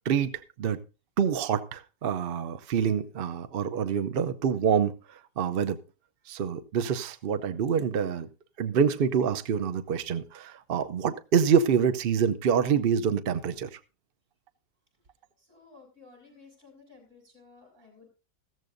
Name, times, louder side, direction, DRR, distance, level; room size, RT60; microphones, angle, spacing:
voice 1, 0.0-0.8 1.2-5.8 6.3-8.3 8.6-13.8, right 7 dB, 75° right, 11 dB, 0.5 m, -26 dB
voice 2, 15.5-18.1, left 4 dB, 40° right, 3 dB, 6.3 m, -54 dB
15.0 x 14.0 x 2.6 m, 0.31 s
omnidirectional pair, 1.9 m